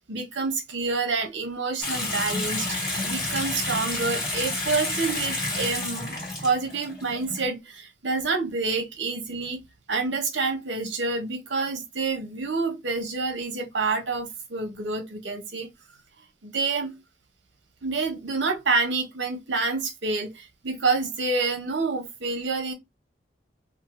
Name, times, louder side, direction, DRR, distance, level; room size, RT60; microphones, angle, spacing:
voice 1, 0.1-6.2 6.4-9.6 9.9-15.7 16.4-16.9 17.8-22.7, right 3 dB, 75° right, 1.0 m, -28 dB
Water tap faucet / Sink (filling or washing) / Bathtub (filling or washing), 1.8-7.5, left 2 dB, 15° left, 1.8 m, -30 dB
2.7 x 2.6 x 3.1 m
head